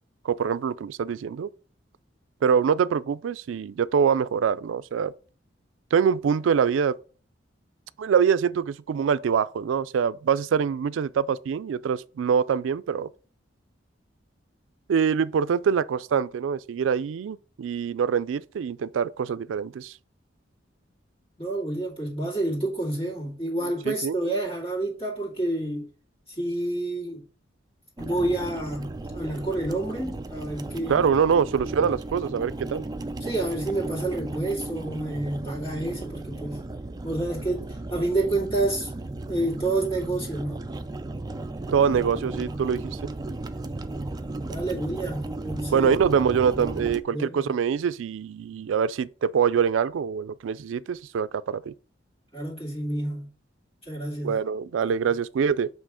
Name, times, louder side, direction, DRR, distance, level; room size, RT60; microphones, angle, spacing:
voice 1, 0.2-1.5 2.4-5.1 5.9-7.0 8.0-13.1 14.9-19.9 23.6-24.1 30.9-32.8 41.7-43.0 45.7-51.7 54.2-55.7, right 7 dB, 90° right, 0.3 m, -24 dB
voice 2, 21.4-25.9 26.3-27.2 28.0-31.1 33.2-36.6 37.0-38.9 39.3-40.6 44.5-45.9 47.1-47.4 52.3-53.3 53.8-54.4, right 2 dB, 30° left, 2.4 m, -29 dB
sound 1, 28.0-47.0, right 2 dB, 20° right, 0.4 m, -35 dB
7.5 x 3.2 x 4.9 m
head